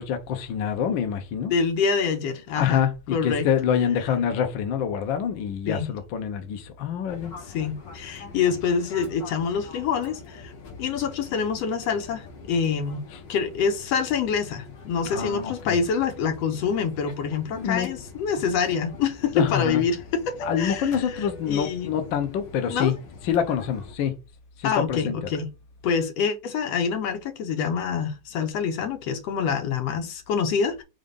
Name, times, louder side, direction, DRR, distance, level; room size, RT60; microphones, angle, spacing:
voice 1, 0.0-1.5 2.6-7.3 15.0-15.8 17.5-17.9 19.3-19.8 20.4-22.9 23.2-24.1 24.6-25.2, left 8 dB, 80° left, 1.0 m, -26 dB
voice 2, 1.5-2.8 3.1-3.5 5.7-5.9 7.5-10.5 10.8-13.0 13.3-20.9 21.5-22.0 22.7-22.9 24.6-25.5 25.8-30.8, left 6 dB, 65° left, 1.9 m, -26 dB
Fixed-wing aircraft airplane, 7.1-23.9, left 3 dB, 45° left, 1.6 m, -43 dB
5.1 x 3.8 x 5.3 m
omnidirectional pair, 3.6 m